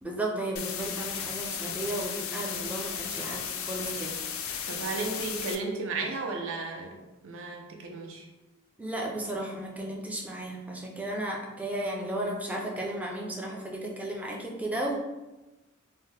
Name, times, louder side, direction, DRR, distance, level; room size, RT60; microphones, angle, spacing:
voice 1, 0.0-4.2 8.8-14.9, right 1 dB, 5° right, -1 dB, 0.4 m, -34 dB
sound 1, 0.6-5.6, left 7 dB, 70° left, 0.4 m, -35 dB
voice 2, 4.7-7.0 7.2-8.3, right 3 dB, 65° right, 2 dB, 0.5 m, -34 dB
2.8 x 2.1 x 3.2 m, 1.1 s
head